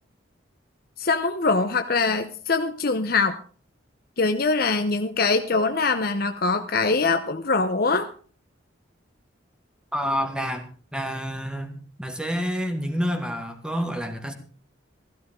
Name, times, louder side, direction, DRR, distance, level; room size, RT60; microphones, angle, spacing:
voice 1, 1.0-3.4 4.2-8.1, left 3 dB, 50° left, 7 dB, 0.9 m, -23 dB
voice 2, 9.9-14.3, equal, 5° right, 5 dB, 2.0 m, -28 dB
15.5 x 15.0 x 3.8 m, 0.41 s
head